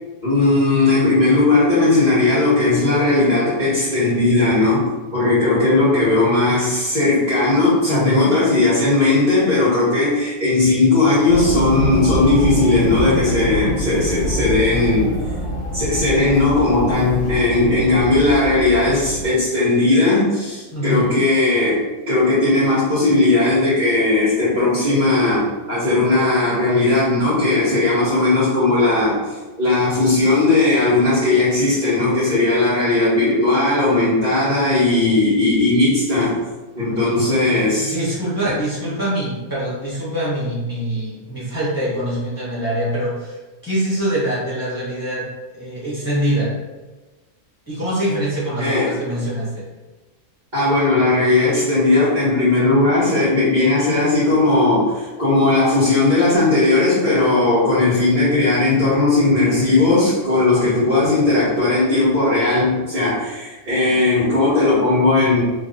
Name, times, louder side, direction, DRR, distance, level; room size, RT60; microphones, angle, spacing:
voice 1, 0.2-15.1 15.7-29.2 29.6-36.4 36.7-37.9 38.4-38.5 48.6-48.9 50.5-65.4, left 2 dB, 35° right, -12 dB, 1.5 m, -17 dB
voice 2, 7.9-8.3 20.7-21.0 37.5-43.4 43.6-45.2 45.5-46.5 47.7-49.6, right 1 dB, 15° left, -11 dB, 1.1 m, -24 dB
sound 1, 11.3-19.3, equal, 55° left, 1.0 m, -25 dB
3.0 x 2.5 x 3.9 m, 1.2 s
omnidirectional pair, 1.3 m